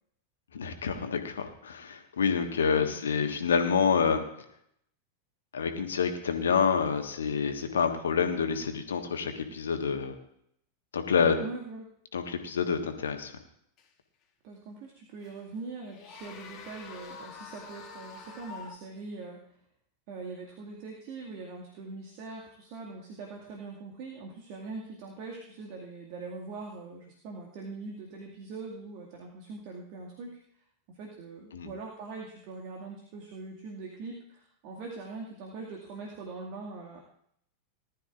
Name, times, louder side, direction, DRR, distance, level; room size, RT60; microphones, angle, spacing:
voice 1, 0.5-4.2 5.5-10.1 10.9-11.4 12.1-13.3 31.5-31.7, left 6 dB, 65° left, 6 dB, 1.5 m, -27 dB
voice 2, 2.7-3.1 11.4-11.9 14.4-19.6 20.1-30.4 30.9-37.0, right 3 dB, 45° right, -1 dB, 2.2 m, -42 dB
sound 1, 13.8-13.9 15.2-15.4 15.8-18.8, left 5 dB, 35° left, 1.9 m, -46 dB
19.0 x 12.5 x 2.5 m, 0.70 s
figure-of-eight pair, 90°, 0 cm